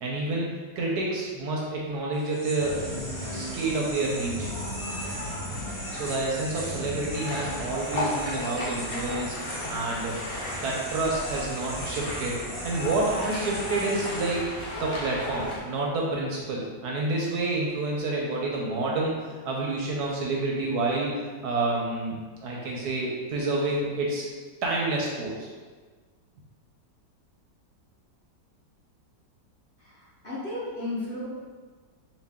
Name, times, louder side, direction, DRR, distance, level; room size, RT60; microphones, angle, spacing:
voice 1, 0.0-0.5 0.8-2.8 3.3-4.5 5.9-9.3 9.7-10.2 10.6-14.5 14.8-21.1 21.4-24.2 24.6-25.5, right 2 dB, 70° right, -2 dB, 1.1 m, -29 dB
sound 1, 2.1-15.0, equal, ahead, 0.6 m, -40 dB
sound 2, 2.6-15.6, left 1 dB, 60° left, 1.2 m, -35 dB
voice 2, 29.8-31.3, left 2 dB, 40° left, -10 dB, 0.8 m, -34 dB
3.9 x 2.5 x 3.5 m, 1.4 s
omnidirectional pair, 1.9 m